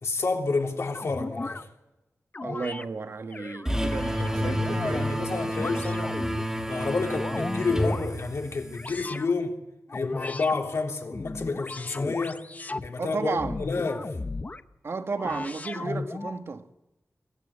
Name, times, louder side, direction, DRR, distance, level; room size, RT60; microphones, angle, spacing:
voice 1, 0.0-1.7 4.4-6.1 6.7-9.5 9.9-12.4 12.8-14.2, left 4 dB, 70° left, 3.3 m, -30 dB
sound 1, 0.9-1.6 2.3-2.8 3.3-5.1 5.5-6.4 6.9-8.1 8.7-9.3 9.9-10.6 11.0-12.9 13.4-14.6 15.2-16.4, left 3 dB, 30° left, 0.8 m, -35 dB
voice 2, 2.4-5.9 13.0-13.6 14.8-16.7, right 4 dB, 60° right, 1.5 m, -34 dB
sound 2, 3.6-9.0, equal, 10° right, 2.3 m, -29 dB
23.5 x 16.0 x 9.8 m
wide cardioid pair, 125°, 5 cm